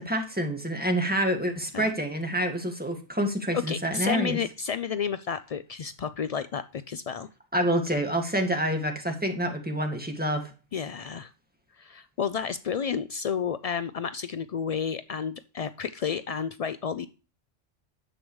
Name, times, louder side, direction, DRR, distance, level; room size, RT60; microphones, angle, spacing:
voice 1, 0.0-4.4 7.5-10.4, right 1 dB, 10° right, 3 dB, 1.9 m, -27 dB
voice 2, 3.5-7.3 10.7-11.3 11.8-17.1, left 7 dB, 75° left, 13 dB, 0.3 m, -31 dB
10.5 x 7.8 x 3.1 m, 0.34 s
omnidirectional pair, 1.2 m